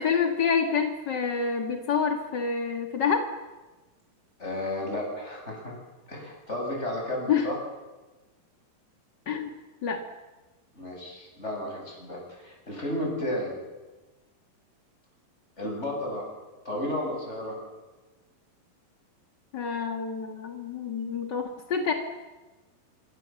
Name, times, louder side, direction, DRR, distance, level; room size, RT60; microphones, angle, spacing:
voice 1, 0.0-3.2 7.3-7.5 9.3-9.5 9.8-10.0 19.5-21.9, left 6 dB, 50° left, 4 dB, 1.3 m, -27 dB
voice 2, 4.4-5.8 6.1-7.5 10.7-13.5 15.6-16.3 16.6-17.6, left 1 dB, 15° left, 0 dB, 7.8 m, -33 dB
27.0 x 24.5 x 7.7 m, 1.2 s
omnidirectional pair, 4.6 m